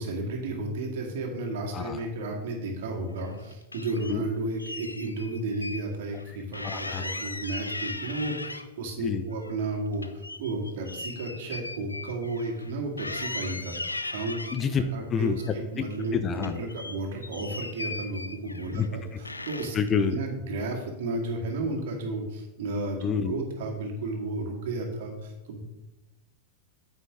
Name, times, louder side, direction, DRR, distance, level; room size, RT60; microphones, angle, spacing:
voice 1, 0.0-13.7 14.1-14.4 14.7-19.8 20.1-25.6, right 2 dB, 55° right, 1 dB, 2.1 m, -33 dB
sound 1, 3.1-4.2 4.6-5.8 6.1-6.2 6.5-8.9 9.3-12.7 13.0-14.6 15.2-16.1 16.4-18.9 19.3-19.9, left 2 dB, 85° left, 0.5 m, -38 dB
voice 2, 6.6-7.0 9.0-9.2 14.5-15.4 15.8-15.9 16.1-16.6 18.7-18.9 19.7-20.2 23.0-23.4, left 6 dB, 25° left, 10 dB, 0.6 m, -27 dB
9.2 x 8.2 x 3.6 m, 1.0 s
figure-of-eight pair, 90°, 0 cm